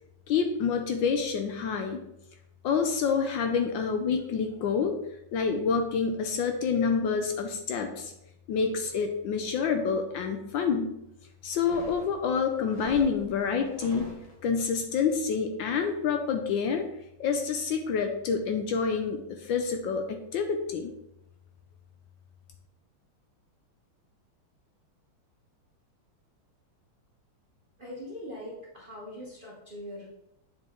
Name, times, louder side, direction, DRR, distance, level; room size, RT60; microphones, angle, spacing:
voice 1, 0.3-2.0 2.6-5.0 5.3-8.1 8.5-10.9 11.4-14.1 14.4-16.9 17.2-20.9, left 6 dB, 75° left, 5 dB, 1.2 m, -28 dB
sound 1, 11.5-14.7, left 2 dB, 45° left, 0.4 m, -45 dB
voice 2, 27.8-30.1, left 1 dB, 35° right, -5 dB, 0.8 m, -41 dB
7.5 x 4.5 x 3.7 m, 0.84 s
omnidirectional pair, 2.3 m